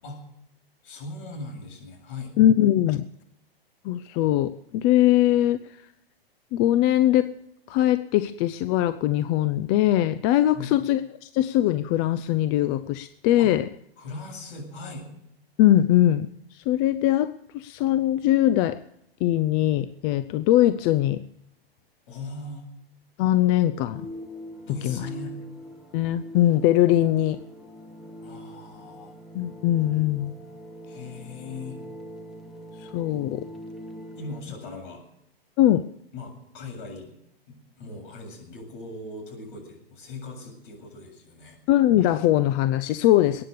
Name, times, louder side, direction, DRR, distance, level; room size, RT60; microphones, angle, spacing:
voice 1, 0.8-2.3 10.5-10.8 13.4-13.5 14.0-15.1 22.1-22.6 24.7-25.5 28.2-29.1 30.9-31.8 34.2-35.0 36.1-37.1 37.5-41.6, left 3 dB, 55° left, 2 dB, 7.6 m, -39 dB
voice 2, 2.4-3.0 3.8-5.7 6.5-7.3 7.7-13.6 15.6-18.8 19.2-21.2 23.2-24.0 24.8-25.1 25.9-27.4 29.3-30.3 32.8-33.4 35.6-35.8 41.7-43.4, left 13 dB, 30° left, 12 dB, 0.6 m, -21 dB
sound 1, 23.9-34.4, equal, ahead, 2.0 m, -42 dB
22.0 x 9.7 x 6.8 m, 0.79 s
hypercardioid pair, 130°, 31 cm